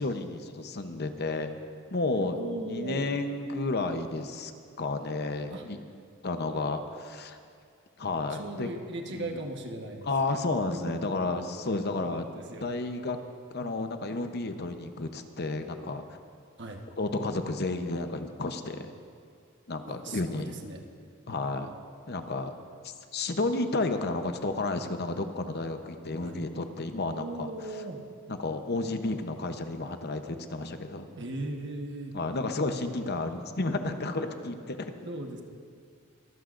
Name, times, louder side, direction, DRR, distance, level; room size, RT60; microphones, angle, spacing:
voice 1, 0.0-1.5 1.9-4.5 4.8-5.8 6.2-7.4 8.0-8.7 9.1-9.4 10.1-12.2 12.6-13.2 13.5-16.2 17.0-18.9 19.7-20.5 21.3-21.7 22.1-22.5 22.8-27.5 28.3-31.1 32.1-34.9, left 2 dB, 50° left, 7 dB, 0.8 m, -32 dB
voice 2, 2.3-3.1 5.5-5.6 8.3-10.1 10.9-11.0 11.9-12.7 16.6-16.8 19.8-20.8 26.2-26.4 27.1-28.0 31.1-32.1 35.0-35.4, right 1 dB, 60° right, 3 dB, 1.3 m, -38 dB
23.5 x 14.5 x 2.6 m, 2.3 s
head